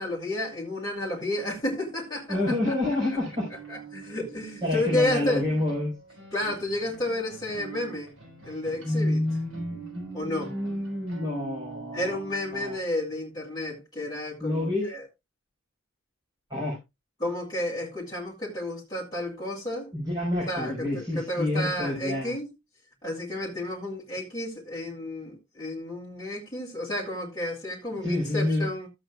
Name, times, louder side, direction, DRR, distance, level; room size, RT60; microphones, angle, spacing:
voice 1, 0.0-2.8 3.7-5.4 6.3-8.1 8.4-9.2 10.1-10.5 11.9-15.1 17.2-19.9 20.5-22.5 23.0-28.9, left 1 dB, 20° left, 2.0 m, -31 dB
voice 2, 2.3-3.5 4.6-5.9 8.8-12.2 12.5-12.8 14.4-14.9 16.5-16.8 19.9-22.3 28.0-28.7, left 1 dB, 20° right, 4.9 m, -28 dB
sound 1, 2.9-12.7, right 5 dB, 55° right, 5.3 m, -45 dB
14.0 x 7.9 x 2.4 m
head